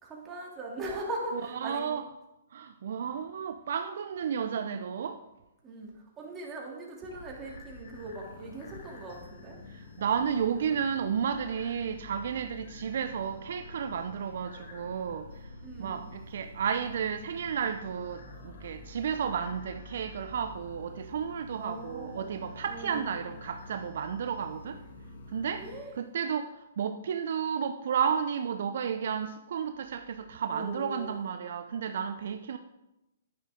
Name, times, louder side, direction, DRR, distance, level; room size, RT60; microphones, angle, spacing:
voice 1, 0.0-2.0 4.4-4.6 5.6-9.6 12.8-12.9 15.6-16.1 21.5-22.3 22.7-23.2 25.6-25.9 30.5-31.2, right 2 dB, 20° right, 2.9 m, -40 dB
voice 2, 1.6-2.0 2.5-5.2 9.7-24.8 25.3-25.7 26.0-32.6, right 7 dB, 60° right, 0.5 m, -32 dB
sound 1, 7.1-25.8, left 2 dB, 60° left, 2.2 m, -48 dB
10.5 x 9.7 x 3.8 m
hypercardioid pair, 130°, 0 cm